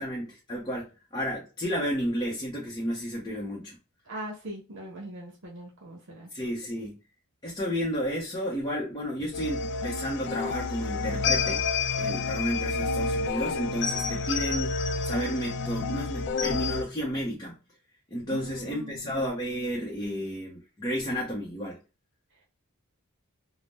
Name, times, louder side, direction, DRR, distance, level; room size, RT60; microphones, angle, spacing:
voice 1, 0.0-3.8 6.3-7.0 7.4-11.6 12.0-17.6 18.1-21.8, equal, 20° left, 0.7 m, -32 dB
voice 2, 4.1-6.3 18.3-19.2, equal, 60° right, 0.8 m, -41 dB
sound 1, 9.3-16.8, left 4 dB, 55° left, 0.3 m, -29 dB
2.6 x 2.0 x 3.5 m
head